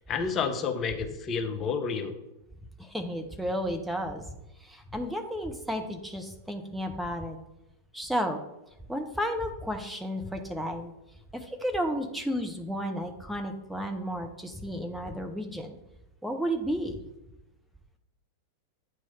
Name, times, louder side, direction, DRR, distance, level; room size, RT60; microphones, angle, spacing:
voice 1, 0.1-2.1, left 5 dB, 30° left, 5 dB, 0.8 m, -30 dB
voice 2, 2.8-4.3 4.6-7.4 7.9-8.4 8.9-10.9 11.3-15.8 16.2-17.0, equal, ahead, 4 dB, 0.7 m, -32 dB
8.8 x 3.1 x 5.4 m, 0.91 s
figure-of-eight pair, 90°, 0 cm